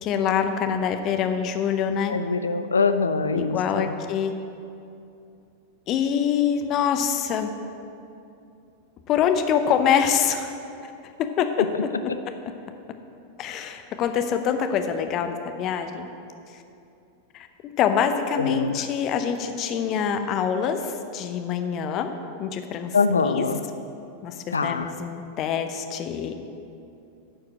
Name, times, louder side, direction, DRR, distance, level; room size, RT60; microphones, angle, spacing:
voice 1, 0.0-2.2 3.3-4.3 5.9-7.5 9.1-10.6 11.2-11.9 12.3-12.4 13.4-16.1 16.5-16.6 17.3-22.1 22.4-23.4 24.2-26.3, left 7 dB, 35° left, 7 dB, 0.7 m, -25 dB
voice 2, 2.1-3.9 18.4-18.8 22.9-23.6 24.5-24.9, left 4 dB, 75° left, 11 dB, 0.4 m, -24 dB
9.8 x 4.7 x 7.3 m, 2.7 s
figure-of-eight pair, 90°, 0 cm